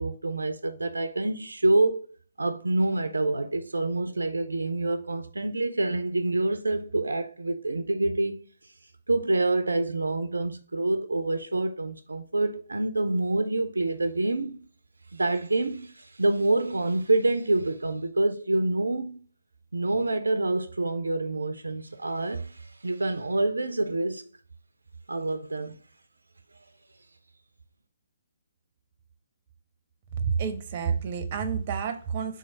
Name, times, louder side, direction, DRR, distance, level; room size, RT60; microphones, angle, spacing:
voice 1, 0.0-2.1 2.4-8.7 9.1-14.6 15.1-19.2 19.7-24.3 25.1-25.8, right 2 dB, 80° right, 0.4 m, -27 dB
voice 2, 30.2-32.4, right 6 dB, 40° right, 0.7 m, -29 dB
3.8 x 3.1 x 3.9 m
figure-of-eight pair, 135°, 0 cm